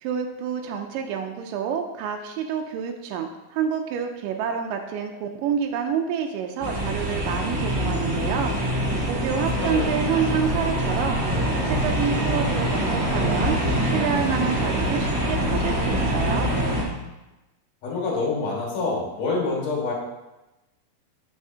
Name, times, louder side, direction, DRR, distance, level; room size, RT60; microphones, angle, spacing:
voice 1, 0.0-11.2 11.6-13.6 13.8-16.5, right 7 dB, 80° right, 3 dB, 2.0 m, -28 dB
sound 1, 6.6-16.8, equal, 35° right, 1.4 m, -24 dB
voice 2, 17.8-19.9, left 3 dB, 55° left, -4 dB, 2.5 m, -27 dB
9.3 x 5.5 x 2.7 m, 1.0 s
omnidirectional pair, 4.2 m